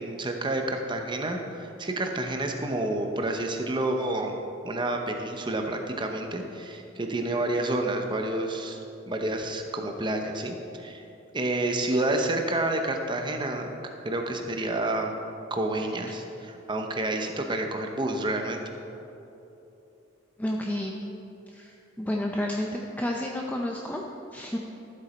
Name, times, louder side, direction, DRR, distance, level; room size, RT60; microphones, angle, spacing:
voice 1, 0.0-4.3 4.6-8.8 9.1-11.0 11.3-15.1 15.5-18.6, right 2 dB, 25° right, 3 dB, 0.8 m, -29 dB
voice 2, 20.4-21.0 21.5-22.7 23.0-24.0 24.3-24.6, left 1 dB, 10° left, 0 dB, 0.5 m, -30 dB
13.0 x 7.9 x 4.4 m, 2.9 s
head